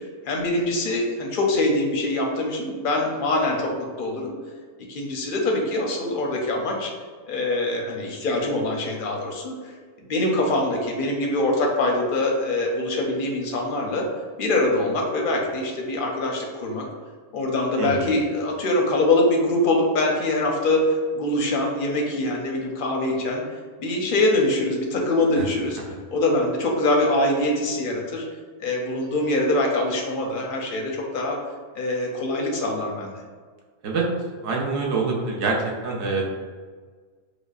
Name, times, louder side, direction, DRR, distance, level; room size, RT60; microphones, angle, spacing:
voice 1, 0.0-3.7 4.0-4.3 4.9-6.9 7.3-9.7 10.0-14.1 14.4-16.8 17.3-20.9 21.1-23.4 23.8-25.8 26.1-28.3 28.6-31.4 31.7-33.1, left 2 dB, 60° left, 0 dB, 0.6 m, -24 dB
voice 2, 34.4-35.6 35.8-36.3, right 4 dB, 65° right, -1 dB, 0.9 m, -25 dB
4.9 x 2.1 x 2.4 m, 1.5 s
omnidirectional pair, 1.3 m